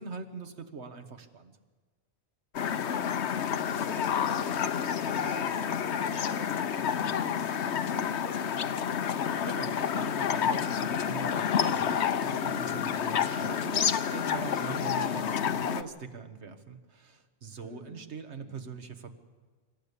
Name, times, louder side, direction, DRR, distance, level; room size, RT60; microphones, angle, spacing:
voice 1, 0.0-1.6 9.2-19.1, right 5 dB, 90° right, 8 dB, 1.6 m, -42 dB
sound 1, 2.5-15.8, left 8 dB, 85° left, 1.1 m, -29 dB
voice 2, 2.5-3.0 3.5-8.8 17.6-17.9 18.4-18.6, equal, 50° left, -1 dB, 6.9 m, -47 dB
26.0 x 13.5 x 8.3 m, 1.4 s
omnidirectional pair, 1.1 m